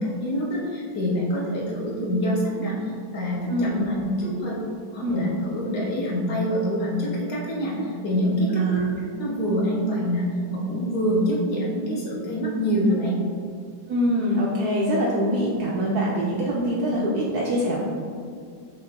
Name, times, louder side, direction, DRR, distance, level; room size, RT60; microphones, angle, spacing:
voice 1, 0.0-4.6 4.9-8.6 8.9-10.2 10.5-13.2, equal, 60° left, -4 dB, 1.4 m, -26 dB
voice 2, 3.5-3.9 5.0-5.3 8.5-9.0 13.9-17.8, equal, 75° right, -4 dB, 0.9 m, -24 dB
4.8 x 3.0 x 3.4 m, 2.2 s
omnidirectional pair, 2.1 m